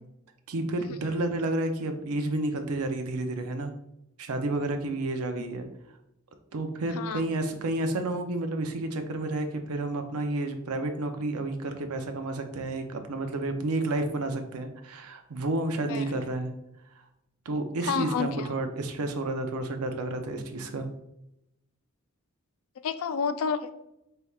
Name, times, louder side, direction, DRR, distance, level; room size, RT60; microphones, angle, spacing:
voice 1, 0.5-3.7 4.2-5.7 6.5-16.5 17.5-20.9, right 2 dB, 80° right, 7 dB, 0.5 m, -30 dB
voice 2, 17.9-18.5 22.8-23.7, left 6 dB, 70° left, 11 dB, 0.3 m, -29 dB
4.3 x 3.4 x 2.3 m, 0.84 s
head